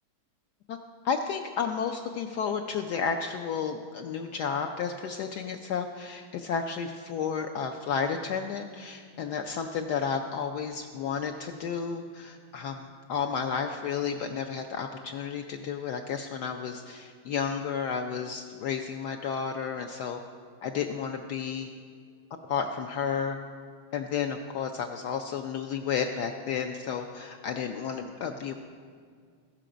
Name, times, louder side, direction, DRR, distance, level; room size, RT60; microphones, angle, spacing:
voice 1, 1.0-20.2 20.6-21.7 22.5-23.4 23.9-28.6, left 6 dB, 80° left, 5 dB, 0.9 m, -32 dB
15.5 x 6.7 x 5.0 m, 2.1 s
omnidirectional pair, 2.3 m